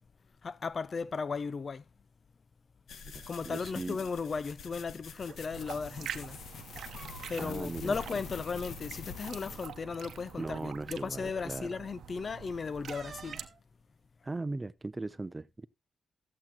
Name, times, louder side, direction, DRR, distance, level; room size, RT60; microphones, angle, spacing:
voice 1, 0.4-1.9 3.3-6.4 7.3-13.4, left 5 dB, 45° left, 0.5 m, -36 dB
sound 1, 2.9-9.7, left 6 dB, 80° left, 1.2 m, -46 dB
voice 2, 3.1-4.0 7.4-8.0 10.4-11.7 14.2-15.7, right 2 dB, 20° right, 0.6 m, -38 dB
sound 2, 5.2-5.4 6.7-7.6 7.8-8.0 8.4-8.6 9.6-9.7 10.3-10.6 12.9-13.6, right 5 dB, 50° right, 1.2 m, -49 dB
sound 3, 5.5-13.5, right 8 dB, 85° right, 0.8 m, -46 dB
14.0 x 7.6 x 2.9 m
cardioid pair, 95°, 0 cm